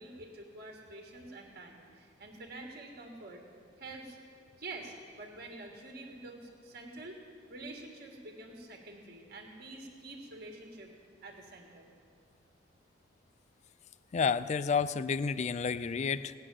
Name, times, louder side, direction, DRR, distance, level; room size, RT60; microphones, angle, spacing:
voice 1, 0.0-3.4 3.8-4.2 4.6-7.2 7.5-10.9 11.2-11.9, right 2 dB, 50° right, 1 dB, 1.5 m, -47 dB
voice 2, 14.1-16.3, left 5 dB, 35° left, 15 dB, 0.3 m, -30 dB
17.5 x 6.6 x 9.0 m, 2.4 s
head